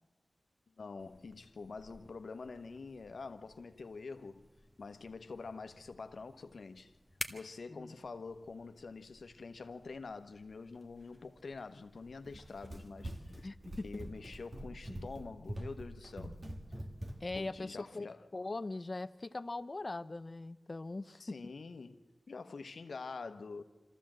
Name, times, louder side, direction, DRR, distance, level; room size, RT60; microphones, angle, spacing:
voice 1, 0.8-4.5 4.8-7.0 7.3-13.5 13.8-16.4 17.4-18.3 21.2-23.6, left 4 dB, 75° left, 1.1 m, -46 dB
sound 1, 1.0-12.9, equal, ahead, 1.5 m, -53 dB
Run, 12.2-17.5, right 1 dB, 40° right, 2.1 m, -45 dB
voice 2, 13.4-13.9 17.2-18.1 18.3-21.4, left 2 dB, 45° left, 0.7 m, -40 dB
25.5 x 14.5 x 7.6 m
cardioid pair, 50°, 0 cm